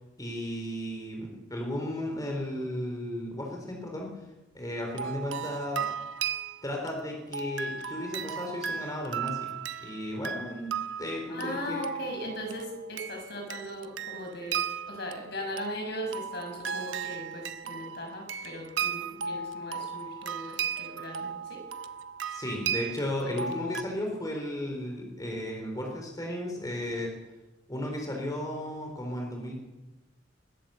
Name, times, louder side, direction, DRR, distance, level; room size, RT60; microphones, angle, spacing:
voice 1, 0.2-4.1 4.5-5.9 6.6-9.5 9.8-10.7 11.0-11.9 22.3-27.1 27.7-29.5, left 1 dB, 20° left, 1 dB, 4.1 m, -34 dB
sound 1, 4.8-23.8, right 7 dB, 80° right, 1.0 m, -36 dB
voice 2, 11.3-21.6, equal, 60° left, 2 dB, 6.9 m, -38 dB
21.0 x 16.5 x 7.9 m, 1.1 s
head